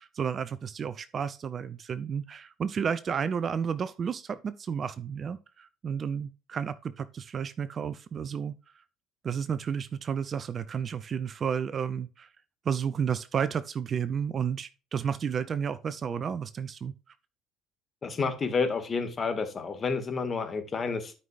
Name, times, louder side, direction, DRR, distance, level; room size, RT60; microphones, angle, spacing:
voice 1, 0.0-8.5 9.2-12.3 12.6-16.9, right 7 dB, 40° right, 0.6 m, -32 dB
voice 2, 18.0-21.1, left 4 dB, 35° left, 2.0 m, -30 dB
12.5 x 5.5 x 2.5 m
figure-of-eight pair, 55°, 0 cm